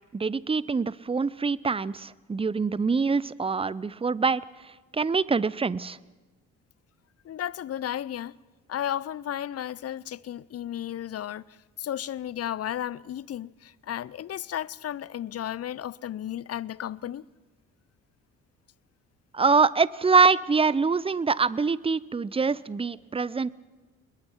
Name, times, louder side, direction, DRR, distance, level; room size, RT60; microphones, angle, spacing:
voice 1, 0.1-4.4 4.9-6.0 19.3-23.5, right 4 dB, 15° right, 0.6 m, -24 dB
voice 2, 7.2-8.4 8.7-11.4 11.8-17.2, left 11 dB, 40° left, 0.6 m, -34 dB
27.0 x 21.0 x 4.6 m
hypercardioid pair, 45°, 40 cm